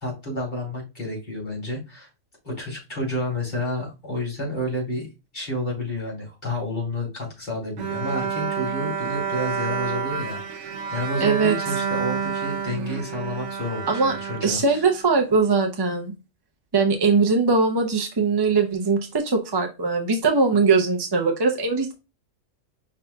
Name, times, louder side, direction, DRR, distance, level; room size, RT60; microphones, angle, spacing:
voice 1, 0.0-2.1 2.4-5.1 5.3-14.8, left 1 dB, 40° left, 3.0 m, -30 dB
Bowed string instrument, 7.8-15.1, right 6 dB, 75° right, 0.9 m, -29 dB
voice 2, 11.2-11.5 13.9-16.1 16.7-21.9, right 4 dB, 30° right, 0.5 m, -21 dB
5.6 x 3.7 x 2.2 m
omnidirectional pair, 1.3 m